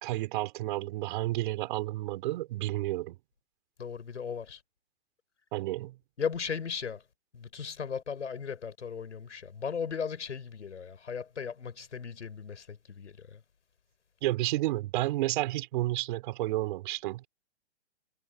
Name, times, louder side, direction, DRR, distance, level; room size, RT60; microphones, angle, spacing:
voice 1, 0.0-3.2 5.5-6.0 14.2-17.3, right 17 dB, 45° right, 3.9 m, -31 dB
voice 2, 3.8-4.6 6.2-7.0 7.3-13.4, left 6 dB, 90° left, 4.9 m, -37 dB
hypercardioid pair, 140°, 34 cm